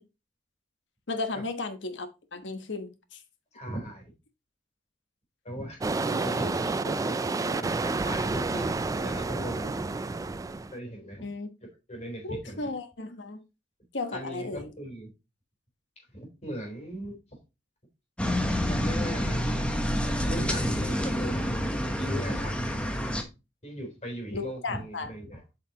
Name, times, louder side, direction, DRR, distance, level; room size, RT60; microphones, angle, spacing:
voice 1, 1.1-3.2 8.5-8.6 11.2-11.5 12.2-13.4 13.9-14.7 24.3-25.1, left 3 dB, 85° left, 1.2 m, -35 dB
voice 2, 3.5-4.1 5.4-9.8 10.7-11.3 11.9-12.7 14.1-15.1 16.1-17.4 18.7-19.7 20.2-22.9 23.6-25.4, equal, 40° left, 3.7 m, -39 dB
sound 1, 5.8-10.7, right 3 dB, 20° right, 0.3 m, -30 dB
sound 2, 18.2-23.2, equal, 5° left, 1.1 m, -28 dB
8.4 x 5.5 x 2.9 m
head